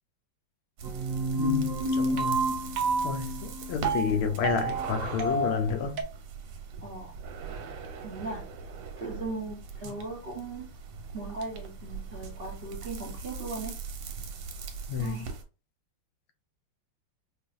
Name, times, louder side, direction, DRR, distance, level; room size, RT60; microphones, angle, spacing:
sound 1, 0.8-6.0, right 2 dB, 65° right, 0.9 m, -29 dB
sound 2, 0.8-15.4, right 5 dB, 90° right, 1.7 m, -41 dB
voice 1, 1.3-2.5 3.0-6.0 14.9-15.2, left 6 dB, 85° left, 1.5 m, -30 dB
voice 2, 6.8-7.1 8.0-8.4 9.0-10.7 11.1-13.7 15.0-15.4, right 3 dB, 45° right, 0.8 m, -38 dB
5.0 x 2.6 x 2.5 m
omnidirectional pair, 2.4 m